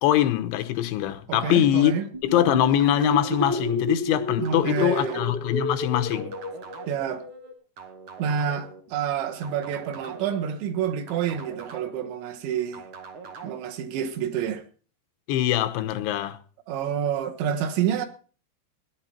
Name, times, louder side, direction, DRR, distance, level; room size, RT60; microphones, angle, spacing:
voice 1, 0.0-6.3 15.3-16.4, left 12 dB, 90° left, 3.3 m, -23 dB
voice 2, 1.3-2.1 4.4-5.2 6.9-7.3 8.2-12.8 13.4-14.6 16.7-18.1, right 8 dB, 85° right, 3.8 m, -28 dB
sound 1, 2.1-7.5, left 1 dB, 15° right, 1.5 m, -31 dB
sound 2, 2.8-3.8 4.4-5.5 6.1-7.1 7.8-8.8 9.4-10.5 11.1-12.1 12.7-13.6, right 5 dB, 50° right, 2.1 m, -42 dB
17.5 x 11.0 x 4.4 m
omnidirectional pair, 5.1 m